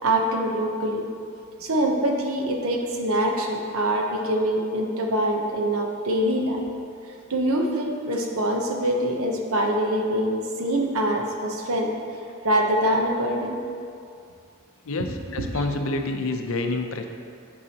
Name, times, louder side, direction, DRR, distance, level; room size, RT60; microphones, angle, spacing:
voice 1, 0.0-1.1 1.6-6.6 7.3-11.9 12.4-13.6, right 1 dB, 75° right, 2 dB, 0.8 m, -24 dB
voice 2, 14.8-17.1, left 2 dB, 65° left, 5 dB, 0.6 m, -28 dB
9.9 x 4.8 x 2.9 m, 2.4 s
head